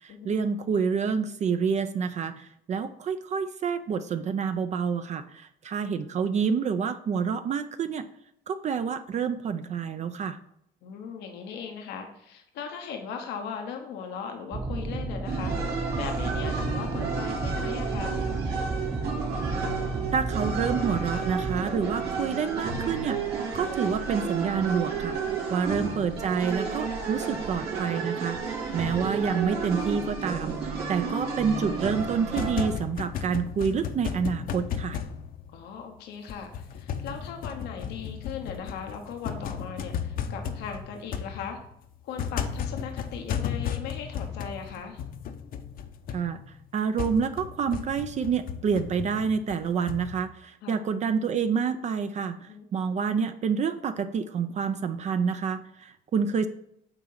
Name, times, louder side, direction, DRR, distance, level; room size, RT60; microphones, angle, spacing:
voice 1, 0.0-8.1 8.5-10.4 19.5-19.7 20.1-35.0 46.1-46.4 46.7-56.5, right 6 dB, 45° right, 10 dB, 0.5 m, -28 dB
voice 2, 10.8-18.2 28.6-28.9 35.5-41.6 42.0-45.0 50.6-50.8 52.5-52.7, left 6 dB, 85° left, 4 dB, 1.0 m, -38 dB
sound 1, 14.5-22.2, right 2 dB, 25° right, 0.9 m, -33 dB
sound 2, 15.2-32.7, right 5 dB, 80° right, 2.6 m, -32 dB
sound 3, 32.1-35.9 36.3-50.2, left 7 dB, 60° left, 0.8 m, -35 dB
9.0 x 3.8 x 5.7 m, 0.77 s
cardioid pair, 110°, 17 cm